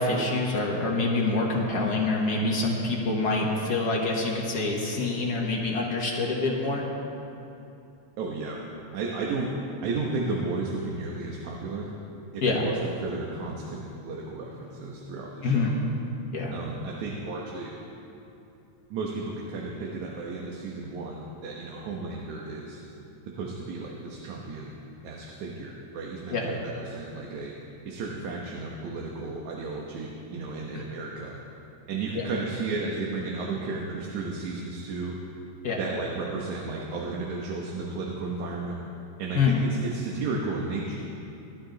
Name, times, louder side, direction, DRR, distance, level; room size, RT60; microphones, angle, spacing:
voice 1, 0.0-6.8 12.4-12.6 15.4-15.7 16.3-16.5 26.3-26.5 32.1-32.3 35.6-35.8 39.3-39.6, left 3 dB, 50° left, -2 dB, 1.3 m, -26 dB
voice 2, 8.2-8.6 8.9-9.5 9.8-11.9 12.3-15.7 16.5-17.7 18.9-22.8 23.4-24.7 25.0-27.5 27.8-31.4 31.9-35.2 35.8-38.8 39.2-41.0, right 3 dB, 75° right, -2 dB, 2.4 m, -33 dB
18.0 x 12.0 x 3.9 m, 2.9 s
omnidirectional pair, 3.5 m